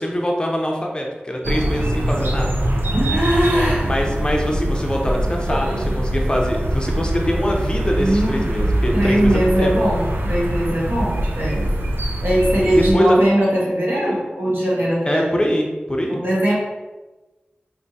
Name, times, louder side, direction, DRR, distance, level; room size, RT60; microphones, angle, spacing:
voice 1, 0.0-2.6 3.5-9.7 12.7-13.2 15.1-16.2, equal, 25° left, 0 dB, 0.6 m, -23 dB
sound 1, 1.4-12.9, right 1 dB, 90° right, 0.5 m, -23 dB
voice 2, 2.9-3.9 5.5-5.8 7.9-8.4 8.9-11.7 12.2-15.3 16.1-16.5, right 1 dB, 70° right, -5 dB, 1.2 m, -20 dB
4.5 x 2.6 x 2.7 m, 1.2 s
wide cardioid pair, 65°, 4 cm